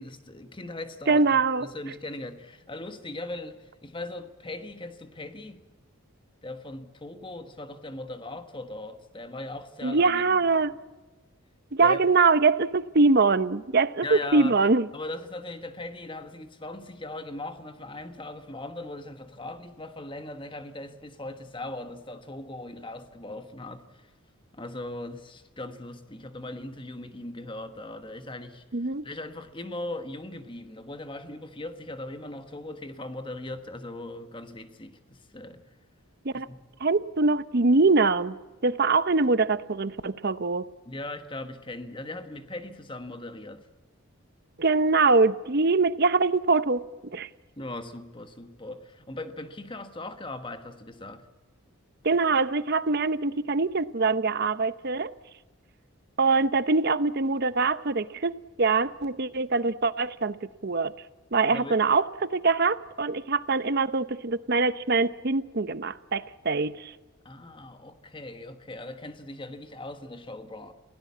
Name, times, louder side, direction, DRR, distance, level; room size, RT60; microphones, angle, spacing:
voice 1, 0.0-5.6 6.4-10.4 11.8-12.0 14.0-14.5 14.9-24.1 24.5-35.6 36.3-36.6 40.9-43.7 47.6-51.2 61.5-61.8 67.2-70.7, left 2 dB, 25° left, 1.3 m, -39 dB
voice 2, 1.1-1.7 9.8-10.7 11.7-14.9 28.7-29.0 36.2-36.5 36.8-38.4 38.6-40.7 44.6-46.9 47.1-47.3 52.0-55.1 56.2-60.4 60.6-60.9 61.3-66.9, right 3 dB, 50° right, 0.8 m, -23 dB
28.0 x 17.0 x 8.5 m
head